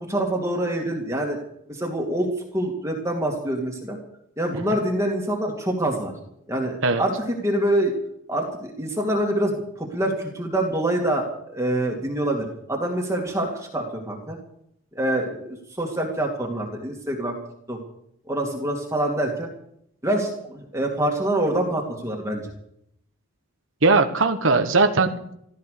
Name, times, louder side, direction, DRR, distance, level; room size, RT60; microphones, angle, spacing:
voice 1, 0.1-1.4 1.7-4.0 4.4-6.1 6.5-7.9 8.3-14.4 14.9-15.5 15.8-17.4 17.7-17.8 18.3-19.5 20.0-22.5, right 1 dB, 15° right, 0 dB, 2.4 m, -25 dB
voice 2, 23.8-25.3, right 3 dB, 70° right, 6 dB, 1.2 m, -19 dB
15.5 x 13.5 x 6.7 m, 0.74 s
head